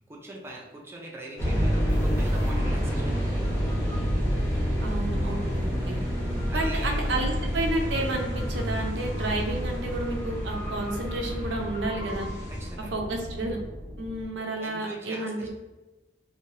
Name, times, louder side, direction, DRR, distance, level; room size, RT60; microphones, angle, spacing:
voice 1, 0.1-3.8 5.5-6.1 6.5-7.3 12.5-13.0 14.6-15.5, right 2 dB, 15° right, -2 dB, 0.4 m, -42 dB
sound 1, 1.4-14.2, equal, 15° left, 0.9 m, -28 dB
sound 2, 1.9-12.7, left 1 dB, 40° left, 1.0 m, -47 dB
voice 2, 4.8-6.0 6.5-12.3 12.9-13.6 14.0-15.4, right 2 dB, 80° right, 2 dB, 0.5 m, -31 dB
3.0 x 2.1 x 2.7 m, 1.1 s
head